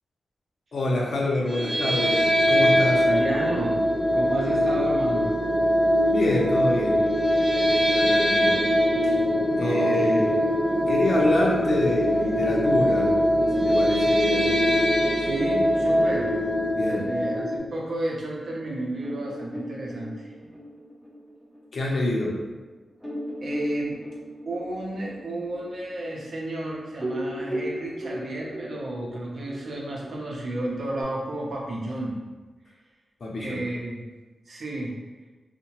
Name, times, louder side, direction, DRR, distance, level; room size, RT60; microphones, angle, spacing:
voice 1, 0.7-2.2 2.5-3.1 6.1-7.0 7.9-8.6 9.0-9.1 9.6-10.3 10.9-13.1 13.6-14.5 16.7-17.1 21.7-22.3 33.2-33.6, left 1 dB, 60° left, -3 dB, 0.6 m, -26 dB
sound 1, 1.5-17.6, equal, 30° right, 0.9 m, -22 dB
voice 2, 3.0-3.8 4.1-5.3 9.6-10.2 15.2-16.3 16.8-20.3 23.4-24.0 24.5-32.2 33.4-34.0 34.5-35.0, right 1 dB, 65° right, -3 dB, 0.6 m, -32 dB
sound 2, 19.0-22.1 22.5-22.6 23.0-26.6 26.9-31.0, equal, ahead, 0.6 m, -36 dB
2.8 x 2.1 x 2.9 m, 1.2 s
wide cardioid pair, 100°, 0 cm